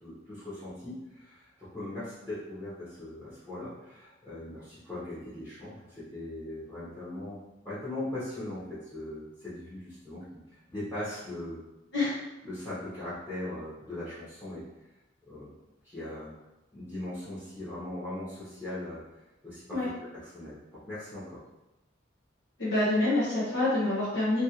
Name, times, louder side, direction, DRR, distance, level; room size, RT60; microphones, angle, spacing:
voice 1, 0.0-7.4 7.6-10.3 10.7-11.6 12.4-14.6 15.3-15.5 15.8-16.3 16.7-19.0 19.4-19.8 20.2-20.6 20.9-21.4, left 1 dB, 15° left, -13 dB, 1.0 m, -39 dB
voice 2, 22.6-24.4, left 2 dB, 65° left, -10 dB, 0.9 m, -26 dB
2.9 x 2.6 x 2.9 m, 0.97 s
head